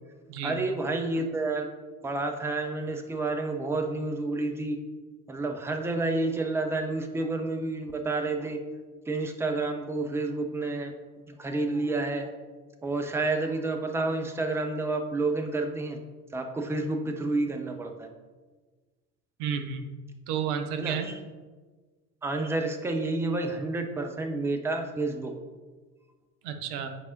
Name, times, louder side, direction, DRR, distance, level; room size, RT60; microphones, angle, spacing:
voice 1, 0.4-1.7 2.0-4.8 5.3-8.6 9.1-10.9 11.3-12.3 12.8-16.0 16.3-18.1 20.8-21.2 22.2-25.3, right 2 dB, 5° right, 4 dB, 0.4 m, -29 dB
voice 2, 19.4-19.9 20.3-21.1 26.4-26.9, right 7 dB, 50° right, 6 dB, 0.8 m, -31 dB
9.1 x 4.7 x 2.7 m, 1.4 s
figure-of-eight pair, 70°, 48 cm